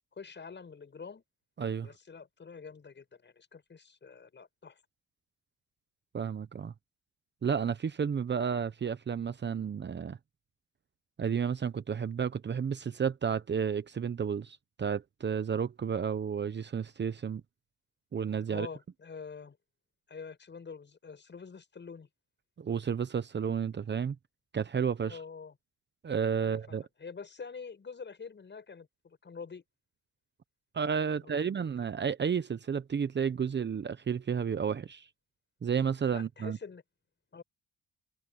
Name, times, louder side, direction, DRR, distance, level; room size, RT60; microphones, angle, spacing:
voice 1, 0.2-1.2 1.8-4.8 18.5-19.6 20.1-22.1 25.0-25.5 26.4-29.6 31.1-31.7 36.1-36.8 37.3-37.4, left 5 dB, 35° left, 7.9 m, -46 dB
voice 2, 1.6-1.9 6.1-6.7 7.4-10.2 11.2-17.4 18.1-18.7 22.6-24.2 24.5-25.2 26.0-26.8 30.7-35.1 35.6-36.6, right 7 dB, 35° right, 1.0 m, -31 dB
cardioid pair, 90°, 30 cm